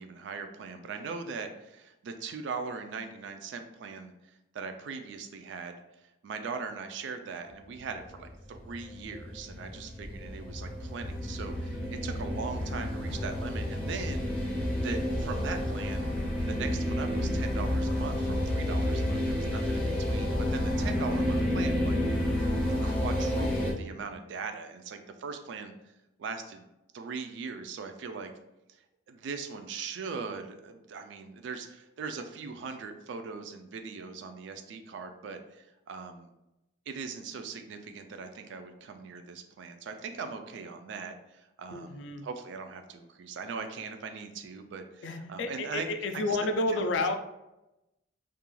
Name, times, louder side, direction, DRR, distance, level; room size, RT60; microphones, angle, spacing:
voice 1, 0.0-4.1 4.5-5.8 6.2-14.3 14.8-16.1 16.5-22.0 22.8-25.7 26.2-26.7 26.9-28.3 29.1-36.3 36.9-45.9 46.1-46.4 46.7-46.9, right 5 dB, 70° right, 7 dB, 0.3 m, -40 dB
sound 1, 7.8-23.7, left 1 dB, 5° left, 0.4 m, -30 dB
voice 2, 41.7-42.2 45.0-47.2, left 2 dB, 70° left, 6 dB, 0.3 m, -30 dB
2.3 x 2.2 x 3.0 m, 0.94 s
head